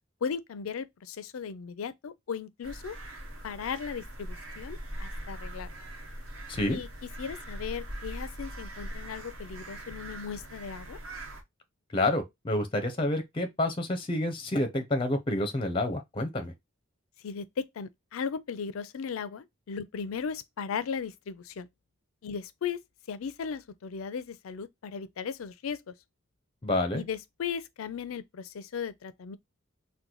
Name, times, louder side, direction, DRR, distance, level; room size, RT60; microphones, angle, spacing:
voice 1, 0.2-3.0 3.4-5.7 6.7-6.9 7.2-11.0 17.2-21.7 22.2-22.8 23.1-25.9 26.9-29.4, left 6 dB, 80° left, 0.4 m, -36 dB
sound 1, 2.6-11.4, right 1 dB, 85° right, 1.0 m, -41 dB
voice 2, 6.5-6.8 11.9-16.5 26.6-27.0, left 1 dB, 25° left, 0.6 m, -28 dB
3.8 x 2.2 x 2.9 m
head